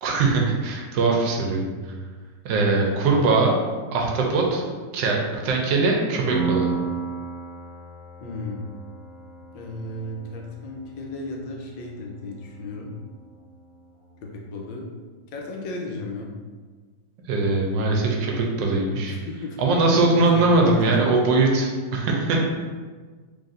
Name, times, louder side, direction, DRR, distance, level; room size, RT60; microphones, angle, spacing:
voice 1, 0.0-1.7 2.4-3.6 3.9-4.6 4.9-6.7 17.3-19.1 19.6-22.4, right 3 dB, 80° right, 0 dB, 1.3 m, -21 dB
Piano, 6.3-13.6, right 5 dB, 50° right, 1.0 m, -34 dB
voice 2, 8.2-8.7 9.5-12.9 14.2-14.9 15.3-16.3 19.1-21.2, left 2 dB, 80° left, 0 dB, 1.3 m, -34 dB
3.9 x 3.3 x 2.5 m, 1.4 s
omnidirectional pair, 2.1 m